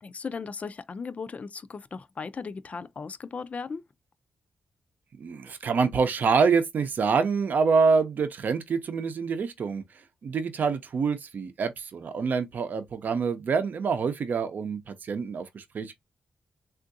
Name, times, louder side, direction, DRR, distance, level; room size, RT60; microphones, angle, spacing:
voice 1, 0.0-3.8, left 5 dB, 40° left, 0.4 m, -37 dB
voice 2, 5.2-9.8 10.2-15.9, right 5 dB, 60° right, 0.6 m, -26 dB
3.5 x 2.5 x 2.6 m
cardioid pair, 90°, 3 cm